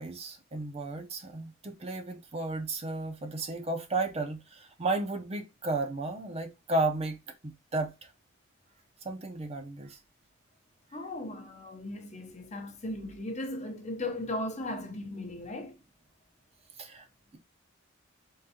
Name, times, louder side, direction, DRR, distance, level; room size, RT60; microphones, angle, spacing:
voice 1, 0.0-7.2 7.4-8.1 9.0-10.0 16.8-17.1, right 2 dB, 30° right, 0.6 m, -33 dB
voice 2, 10.9-15.8, left 1 dB, 35° left, 0.7 m, -37 dB
3.7 x 3.2 x 2.8 m
head